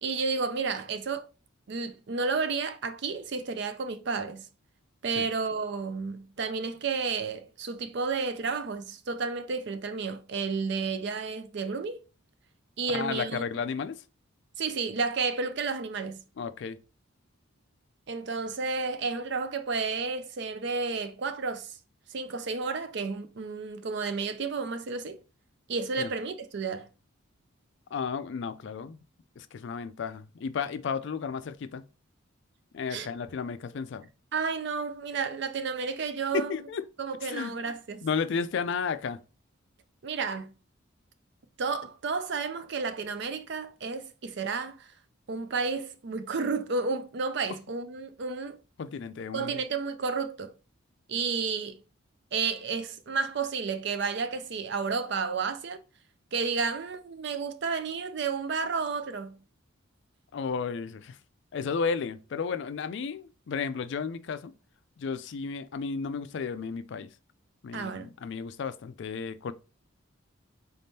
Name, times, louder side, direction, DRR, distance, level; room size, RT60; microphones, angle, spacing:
voice 1, 0.0-1.2 1.7-4.5 5.0-12.0 12.8-13.4 14.6-16.2 18.1-21.8 22.1-25.2 25.7-26.9 32.9-33.1 34.3-36.6 37.0-38.0 40.0-40.5 41.6-44.9 45.3-48.6 49.3-50.5 51.1-51.8 52.3-55.8 56.3-59.4 67.7-68.1, right 4 dB, 55° right, 0.5 m, -31 dB
voice 2, 12.9-14.0 16.4-16.8 26.0-26.1 27.9-29.0 29.4-31.8 32.7-34.1 36.3-36.9 37.2-37.5 38.0-39.2 48.8-49.6 60.3-61.2 61.5-64.5 65.0-67.1 67.6-69.5, left 5 dB, 60° left, 0.3 m, -33 dB
4.1 x 3.5 x 2.7 m
head